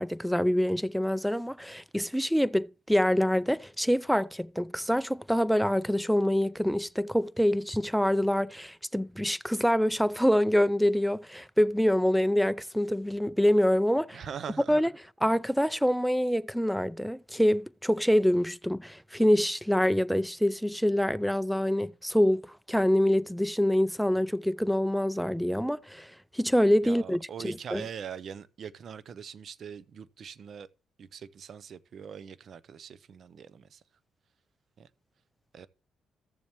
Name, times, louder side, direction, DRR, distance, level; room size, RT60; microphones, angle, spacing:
voice 1, 0.0-14.2 14.7-14.9 15.2-26.1 26.3-27.8, equal, ahead, 0.4 m, -26 dB
voice 2, 14.1-14.8 26.8-30.7 31.0-33.8 34.8-34.9 35.5-35.7, right 7 dB, 60° right, 0.6 m, -42 dB
14.0 x 7.1 x 3.0 m
supercardioid pair, 60°, 0 cm